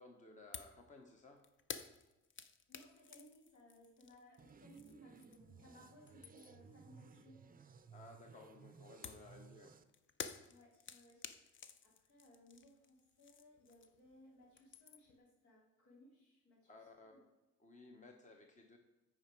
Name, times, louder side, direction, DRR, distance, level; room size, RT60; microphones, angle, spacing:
voice 1, 0.0-1.4 7.9-9.7 16.6-17.2 17.6-18.8, left 2 dB, 25° left, 3 dB, 1.0 m, -58 dB
sound 1, 0.5-0.8 1.1-5.6 5.9-6.7 9.0-14.1 14.4-15.2, left 6 dB, 40° left, 0.6 m, -52 dB
voice 2, 2.7-7.4 10.5-16.7 17.0-17.2, equal, 70° left, -2 dB, 3.2 m, -63 dB
sound 2, 4.4-9.8, right 5 dB, 30° right, 0.5 m, -60 dB
8.8 x 5.1 x 4.6 m, 1.0 s
cardioid pair, 90°, 30 cm